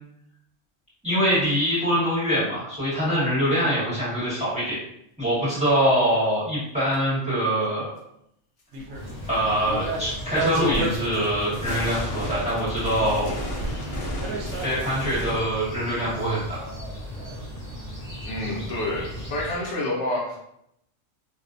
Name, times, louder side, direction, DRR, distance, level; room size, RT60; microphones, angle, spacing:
voice 1, 1.0-4.8 5.2-7.9 9.3-13.3 14.6-16.6, equal, 5° right, -10 dB, 1.0 m, -24 dB
sound 1, 5.5-5.6 6.9-7.0 9.1-9.2 9.8-15.4, equal, 55° left, 0.4 m, -34 dB
sound 2, 8.7-9.2 9.6-11.2 11.5-12.3 12.8-15.3, right 2 dB, 70° right, 0.9 m, -31 dB
sound 3, 8.9-19.7, equal, 40° right, 0.6 m, -37 dB
voice 2, 18.2-20.4, left 1 dB, 70° left, -3 dB, 0.9 m, -28 dB
2.6 x 2.0 x 2.4 m, 0.76 s
omnidirectional pair, 1.3 m